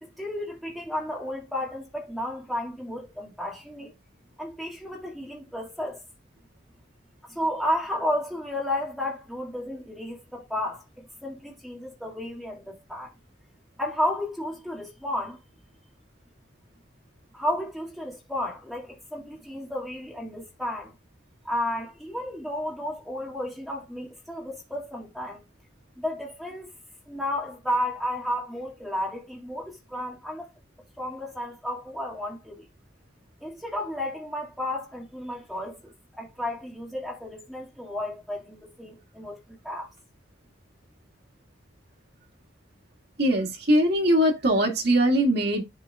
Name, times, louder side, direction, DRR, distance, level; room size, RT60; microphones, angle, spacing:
voice 1, 0.0-3.9 4.4-6.0 7.3-13.1 13.8-15.4 17.3-20.9 21.4-25.4 26.0-26.7 27.1-30.5 31.0-32.7 33.4-39.9, left 1 dB, ahead, 2.0 m, -32 dB
voice 2, 43.2-45.6, right 1 dB, 60° right, 1.8 m, -21 dB
11.0 x 3.8 x 2.4 m
head